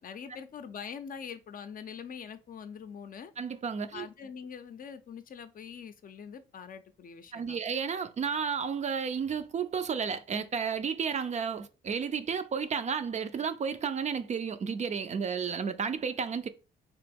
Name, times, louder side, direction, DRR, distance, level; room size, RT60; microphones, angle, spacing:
voice 1, 0.0-3.3 3.9-7.6, left 7 dB, 45° left, 0.5 m, -44 dB
voice 2, 3.4-4.1 7.3-16.5, right 6 dB, 35° right, 0.4 m, -32 dB
3.4 x 3.0 x 3.4 m
cardioid pair, 90°, 20 cm